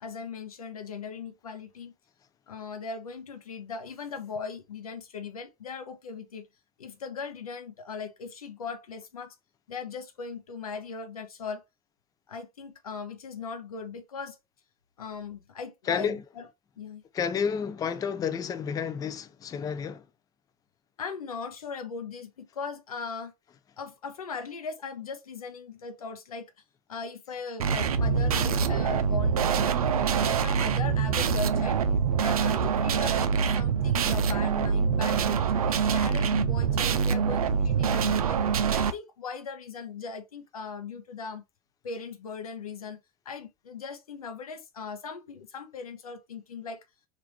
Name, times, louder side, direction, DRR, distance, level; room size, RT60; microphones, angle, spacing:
voice 1, 0.0-1.9 2.5-6.5 6.8-9.4 9.7-11.6 12.3-14.4 15.0-16.5 16.8-17.0 21.0-23.3 23.8-26.5 26.9-29.8 30.2-31.8 32.2-35.4 35.7-38.4 38.7-41.4 41.8-43.0 43.3-46.8, left 5 dB, 85° left, 0.6 m, -39 dB
voice 2, 15.9-16.2 17.1-20.0, left 7 dB, 20° left, 0.4 m, -30 dB
sound 1, 27.6-38.9, right 6 dB, 80° right, 0.4 m, -25 dB
3.4 x 2.5 x 3.1 m
figure-of-eight pair, 75°, 18 cm